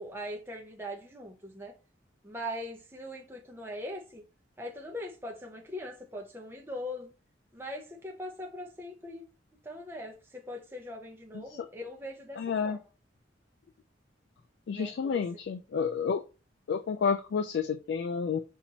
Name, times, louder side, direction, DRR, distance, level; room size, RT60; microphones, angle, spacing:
voice 1, 0.0-1.7 2.2-4.2 4.6-7.1 7.5-9.2 9.6-12.8 14.7-15.2, equal, 10° right, 0.8 m, -41 dB
voice 2, 11.3-11.7 12.4-12.8 14.7-16.2 16.7-18.4, left 6 dB, 60° left, 0.3 m, -30 dB
4.3 x 2.7 x 4.2 m
head